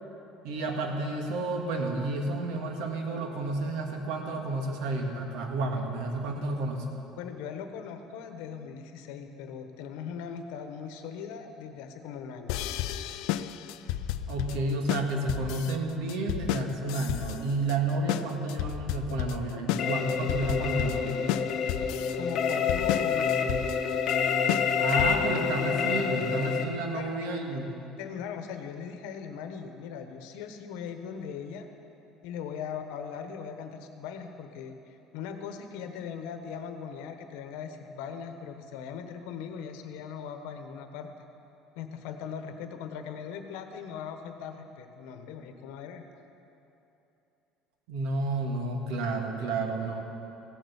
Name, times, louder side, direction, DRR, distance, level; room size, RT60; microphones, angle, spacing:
voice 1, 0.4-6.9 14.3-21.2 24.8-27.7 47.9-50.0, right 2 dB, 75° right, 3 dB, 1.8 m, -31 dB
voice 2, 7.2-12.6 22.2-23.5 26.9-27.6 28.0-31.7 32.2-41.3 41.8-46.0, left 7 dB, 90° left, 7 dB, 1.2 m, -40 dB
sound 1, 12.5-25.4, left 12 dB, 70° left, 0.4 m, -32 dB
sound 2, 19.8-26.6, left 6 dB, 45° left, 0.9 m, -28 dB
16.0 x 8.0 x 7.1 m, 2.9 s
cardioid pair, 170°, 0 cm